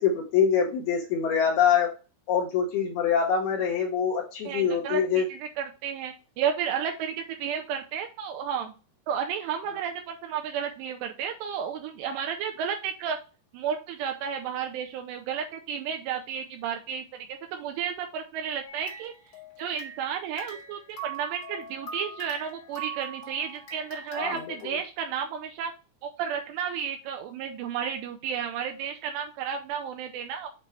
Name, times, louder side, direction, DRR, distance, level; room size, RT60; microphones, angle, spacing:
voice 1, 0.0-1.9 2.3-5.3 24.1-24.7, left 7 dB, 75° left, 2 dB, 2.4 m, -25 dB
voice 2, 4.5-8.7 9.1-13.2 13.5-19.1 19.6-25.7 26.0-30.5, right 8 dB, 85° right, 4 dB, 2.5 m, -32 dB
sound 1, 18.7-20.1 20.4-24.7, right 4 dB, 55° left, 1.7 m, -41 dB
7.5 x 4.0 x 3.3 m, 0.33 s
omnidirectional pair, 5.4 m